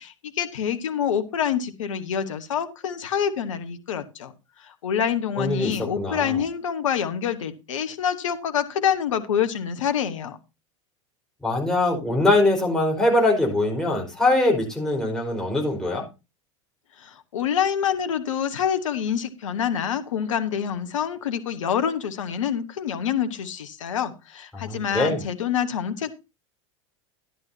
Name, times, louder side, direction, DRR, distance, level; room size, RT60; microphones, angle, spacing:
voice 1, 0.0-4.3 4.6-10.4 17.0-26.1, left 8 dB, 70° left, 10 dB, 1.2 m, -26 dB
voice 2, 5.4-6.4 11.4-16.0 24.5-25.2, left 2 dB, 5° left, -2 dB, 4.6 m, -22 dB
13.0 x 10.5 x 2.8 m, 0.27 s
figure-of-eight pair, 85°, 17 cm